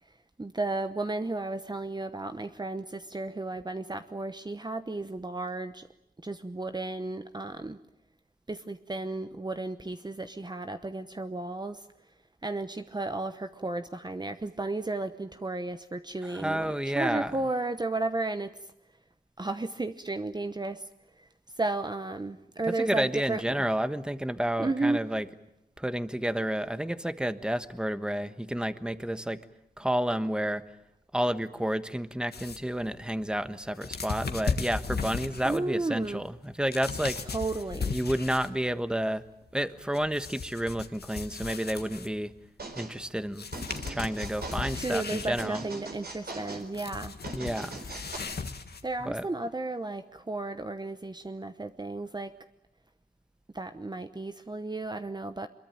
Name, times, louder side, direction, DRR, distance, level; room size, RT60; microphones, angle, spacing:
voice 1, 0.4-5.9 6.2-7.8 8.5-11.9 12.4-18.5 19.4-20.9 21.2-21.3 21.6-23.6 24.6-25.0 35.4-36.2 37.3-37.9 44.7-47.1 48.8-52.4 53.5-55.5, right 2 dB, 25° right, 9 dB, 1.0 m, -33 dB
voice 2, 16.3-17.3 22.8-25.2 25.8-29.4 29.8-30.6 31.1-37.2 37.9-39.2 39.5-42.3 42.7-43.4 43.9-45.6 47.3-47.8 49.0-49.3, right 1 dB, 5° right, 12 dB, 1.3 m, -30 dB
sound 1, 32.3-38.7 39.0-42.3 43.0-43.1 43.3-49.1, left 5 dB, 70° left, 1.8 m, -36 dB
sound 2, 42.6-42.9 43.5-44.8 45.4-46.7 47.2-48.2, right 3 dB, 65° right, 4.2 m, -40 dB
24.0 x 22.5 x 9.1 m, 0.80 s
wide cardioid pair, 70°, 17 cm